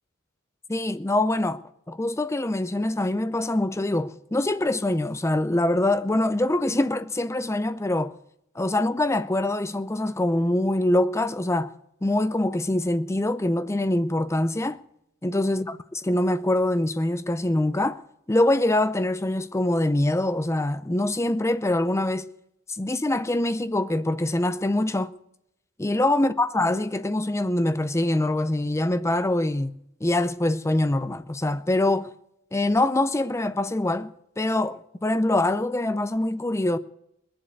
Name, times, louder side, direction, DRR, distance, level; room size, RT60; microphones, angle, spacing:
voice 1, 0.7-1.6 1.9-8.1 8.6-11.7 12.0-14.8 15.2-15.7 16.1-18.0 18.3-22.3 22.7-25.1 25.8-32.1 32.5-34.1 34.4-36.8, left 1 dB, 15° left, 0.5 m, -24 dB
20.0 x 7.7 x 8.0 m
head